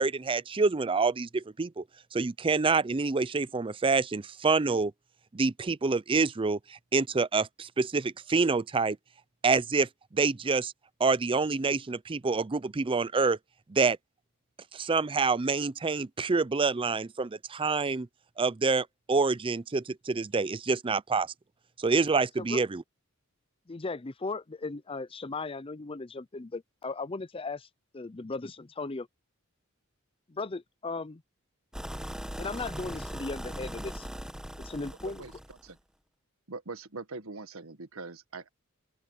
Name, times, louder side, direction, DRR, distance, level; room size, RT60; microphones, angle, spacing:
voice 1, 0.0-1.8 2.1-4.9 5.3-9.0 9.4-10.7 11.0-13.4 13.7-14.0 14.7-18.1 18.4-21.3 21.8-22.8, right 4 dB, 25° right, 0.5 m, -27 dB
voice 2, 23.7-27.7 27.9-29.1 30.3-31.2 32.4-34.1 34.6-35.2, left 3 dB, 25° left, 0.6 m, -37 dB
sound 1, 31.7-35.7, equal, 5° right, 1.2 m, -39 dB
voice 3, 35.0-35.8 36.5-38.5, right 3 dB, 90° right, 1.6 m, -42 dB
open air
head